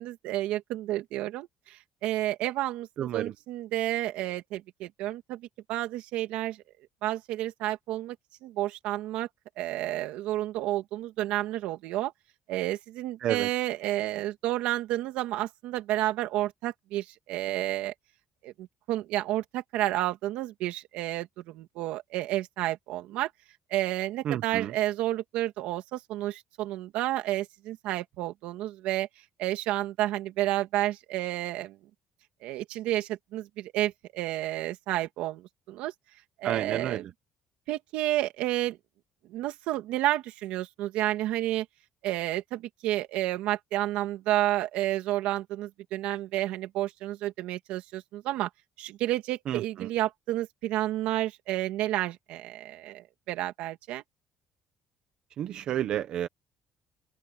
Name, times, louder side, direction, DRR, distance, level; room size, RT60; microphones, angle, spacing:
voice 1, 0.0-6.6 7.0-8.2 8.4-9.3 9.6-12.1 12.5-17.9 18.4-23.3 23.7-29.1 29.4-31.8 32.4-35.9 36.4-37.0 37.7-38.8 39.3-41.7 42.0-48.5 48.8-54.0, right 15 dB, 80° right, 2.5 m, -30 dB
voice 2, 3.0-3.3 13.2-13.5 24.2-24.7 36.4-37.1 49.5-49.9 55.4-56.3, right 11 dB, 50° right, 0.9 m, -30 dB
open air
cardioid pair, 170°, 2 cm